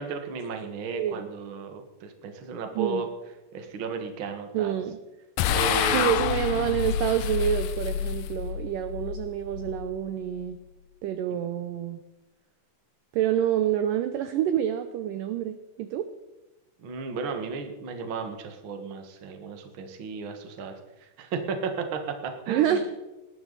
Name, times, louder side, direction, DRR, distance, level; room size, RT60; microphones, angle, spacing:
voice 1, 0.0-3.1 3.5-4.7 5.5-6.2 16.8-22.8, right 5 dB, 50° right, 5 dB, 1.5 m, -34 dB
voice 2, 0.9-1.3 2.8-3.1 4.5-5.0 5.9-10.6 11.0-12.0 13.1-16.1 22.5-22.8, right 10 dB, 80° right, 10 dB, 1.9 m, -27 dB
sound 1, 5.4-10.7, left 10 dB, 85° left, 1.9 m, -29 dB
19.0 x 12.0 x 4.0 m, 1.1 s
omnidirectional pair, 4.6 m